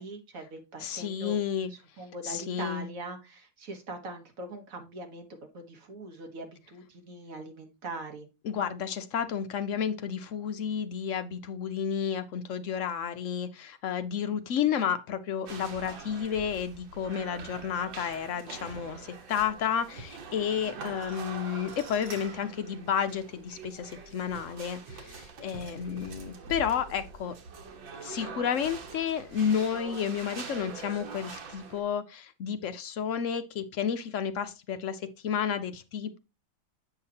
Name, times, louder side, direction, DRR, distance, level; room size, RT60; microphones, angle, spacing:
voice 1, 0.0-1.4 2.0-8.3 20.8-20.9, right 2 dB, 50° right, 1.7 m, -41 dB
voice 2, 0.8-1.7 2.2-2.9 8.4-27.3 28.0-36.2, left 8 dB, 60° left, 0.8 m, -31 dB
sound 1, 15.5-31.8, right 4 dB, 85° right, 2.0 m, -44 dB
8.0 x 5.8 x 2.8 m
omnidirectional pair, 2.0 m